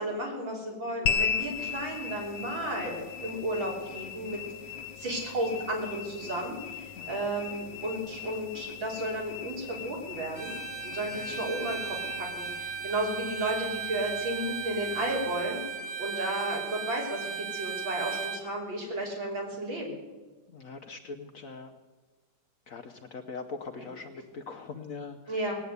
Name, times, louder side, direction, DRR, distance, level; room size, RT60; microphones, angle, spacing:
voice 1, 0.0-4.4 5.0-10.5 10.8-20.0 23.8-23.9 25.3-25.5, right 1 dB, 80° right, -2 dB, 4.2 m, -33 dB
sound 1, 1.1-15.7, left 8 dB, 85° left, 1.4 m, -38 dB
voice 2, 7.0-7.3 11.1-11.4 20.5-21.8 22.7-25.4, left 4 dB, 55° left, 6 dB, 1.0 m, -42 dB
Bowed string instrument, 10.3-18.5, right 7 dB, 50° right, 2.9 m, -36 dB
18.5 x 8.5 x 8.0 m, 1.3 s
omnidirectional pair, 2.1 m